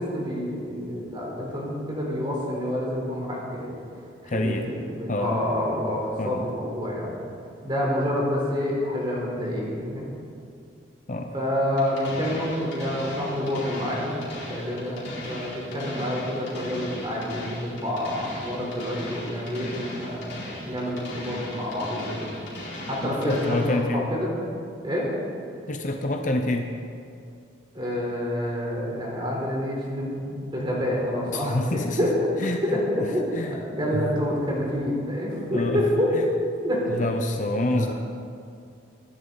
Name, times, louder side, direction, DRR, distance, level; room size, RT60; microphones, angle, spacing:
voice 1, 0.0-3.7 4.2-7.2 7.6-10.1 11.3-22.3 22.9-24.3 24.8-25.1 27.7-32.3 32.6-36.1 36.6-37.0 37.5-37.9, equal, 25° right, -4 dB, 4.1 m, -28 dB
voice 2, 4.2-4.7 5.1-5.4 6.2-6.5 11.1-11.3 23.0-24.1 25.7-26.7 31.3-32.1 32.4-33.1 33.3-34.1 35.5-35.8 36.1-36.2 36.9-37.9, left 1 dB, 40° left, 4 dB, 0.8 m, -27 dB
sound 1, 11.8-23.8, left 1 dB, 65° left, 4.5 m, -38 dB
24.0 x 11.0 x 4.1 m, 2.5 s
head